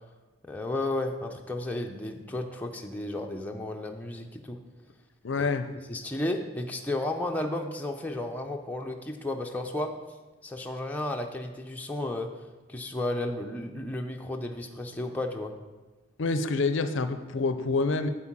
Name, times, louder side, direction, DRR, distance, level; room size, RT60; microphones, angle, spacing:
voice 1, 0.4-4.6 5.9-10.0 10.4-15.5, left 1 dB, 5° left, 2 dB, 0.5 m, -33 dB
voice 2, 5.2-5.7 16.2-18.1, left 3 dB, 60° left, 10 dB, 0.5 m, -27 dB
8.4 x 4.5 x 7.3 m, 1.2 s
head